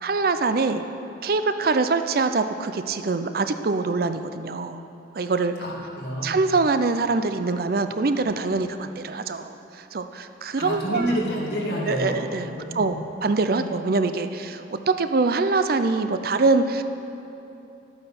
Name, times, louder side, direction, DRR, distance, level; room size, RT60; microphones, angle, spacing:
voice 1, 0.0-0.8 1.2-4.8 5.2-5.5 6.2-9.5 9.9-11.2 11.9-16.8, right 3 dB, 55° right, 9 dB, 0.5 m, -24 dB
voice 2, 5.6-6.4 10.6-13.0 13.5-13.7, equal, 60° left, -4 dB, 2.5 m, -29 dB
11.5 x 8.8 x 5.9 m, 2.8 s
head